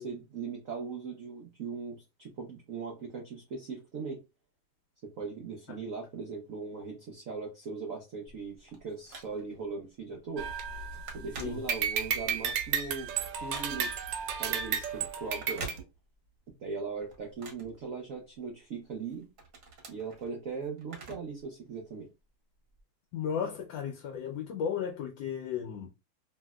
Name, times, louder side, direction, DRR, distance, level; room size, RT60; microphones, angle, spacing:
voice 1, 0.0-4.2 5.0-10.5 11.1-13.1 13.4-14.0 14.4-15.7 16.6-19.3 19.9-22.1, right 5 dB, 90° right, 0.7 m, -39 dB
Telephone, 8.3-9.7 10.2-10.4 10.6-12.1 12.6-14.1 15.3-16.4 16.7-18.5 18.9-21.4 21.7-21.8 22.7-22.8, right 3 dB, 55° right, 0.9 m, -46 dB
sound 1, 10.4-11.3 11.7-15.7, right 7 dB, 75° right, 1.1 m, -33 dB
voice 2, 23.1-25.9, left 7 dB, 75° left, 1.2 m, -34 dB
3.2 x 2.7 x 2.2 m
omnidirectional pair, 2.3 m